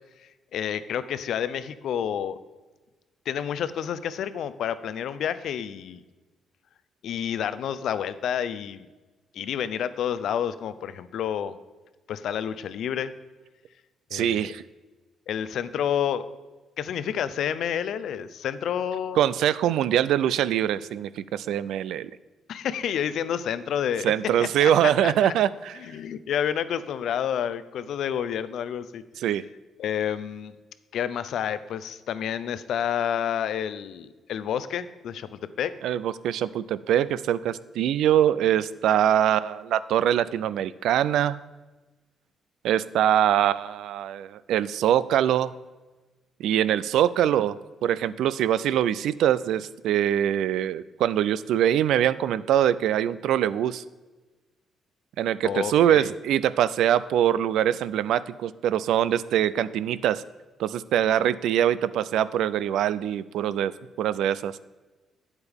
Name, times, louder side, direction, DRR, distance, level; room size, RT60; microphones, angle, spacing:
voice 1, 0.5-2.4 3.3-6.0 7.0-8.9 9.3-11.6 12.1-13.1 14.1-14.5 15.3-16.3 16.8-19.2 22.5-24.1 24.4-25.3 25.7-29.0 29.8-30.5 30.9-35.7 55.4-56.1, left 9 dB, 75° left, 14 dB, 0.5 m, -29 dB
voice 2, 14.1-14.6 19.2-22.1 24.0-25.8 29.2-29.4 35.8-41.4 42.6-45.5 46.4-53.8 55.2-60.2 60.6-63.7 64.0-64.5, right 10 dB, 80° right, 17 dB, 0.3 m, -23 dB
9.0 x 8.0 x 3.5 m, 1.2 s
cardioid pair, 90°, 0 cm